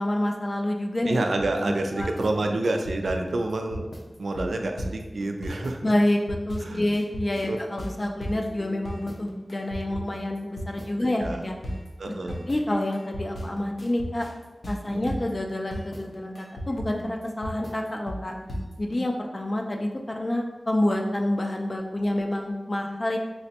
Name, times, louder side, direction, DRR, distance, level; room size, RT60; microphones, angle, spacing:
voice 1, 0.0-1.2 1.6-2.1 5.8-11.6 12.3-14.3 14.7-18.3 18.8-23.2, left 1 dB, 35° left, 2 dB, 0.3 m, -28 dB
voice 2, 1.1-3.9 4.2-5.9 6.6-6.8 7.5-7.6 11.0-11.4 12.0-12.5 14.9-15.1, right 2 dB, 85° right, 4 dB, 0.3 m, -28 dB
sound 1, 1.4-19.0, equal, 85° left, 0.6 m, -35 dB
4.2 x 2.0 x 2.8 m, 1.1 s
wide cardioid pair, 85°, 0 cm